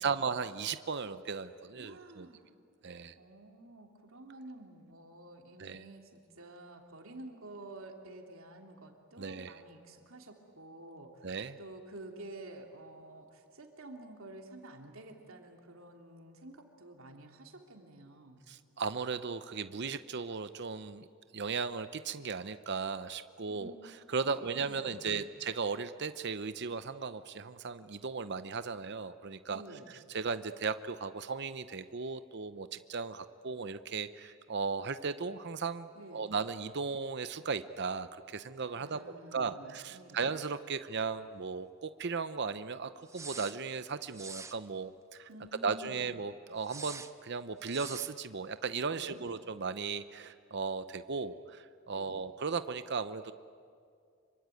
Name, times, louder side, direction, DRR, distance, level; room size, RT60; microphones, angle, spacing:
voice 1, 0.0-2.3 2.8-3.1 5.6-5.8 9.2-9.6 11.2-11.6 18.5-21.1 21.3-23.7 24.1-29.6 30.1-39.0 39.3-45.3 45.6-53.3, right 5 dB, 55° right, 12 dB, 0.8 m, -36 dB
voice 2, 1.8-2.4 3.2-11.2 11.6-18.4 23.5-23.7 24.4-25.3 29.5-29.9 35.9-36.3 38.7-40.2 45.3-46.1 48.9-49.3 51.9-52.2, right 2 dB, 70° right, 2 dB, 3.1 m, -50 dB
sound 1, 43.1-43.6 44.1-44.6 46.6-47.1 47.6-48.1, right 4 dB, 15° right, 0.8 m, -45 dB
26.0 x 24.5 x 9.3 m, 2.3 s
head